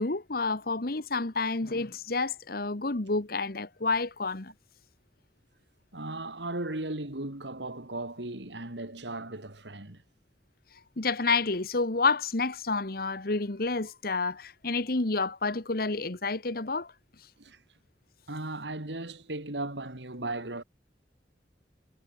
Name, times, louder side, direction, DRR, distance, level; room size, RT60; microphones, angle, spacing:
voice 1, 0.0-4.5 11.0-16.9, left 3 dB, 55° left, 1.5 m, -29 dB
voice 2, 5.9-10.0 17.4-17.6 18.3-20.6, right 2 dB, 85° right, 3.5 m, -36 dB
head